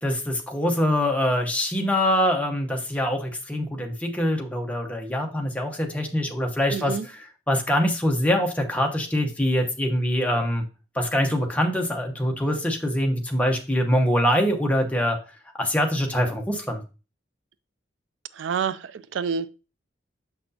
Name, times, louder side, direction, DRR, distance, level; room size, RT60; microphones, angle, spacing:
voice 1, 0.0-10.7 10.9-15.2 15.6-16.8, equal, 5° left, 0.9 m, -24 dB
voice 2, 6.7-7.1 18.4-19.5, right 6 dB, 80° right, 0.4 m, -28 dB
6.6 x 6.0 x 2.8 m
head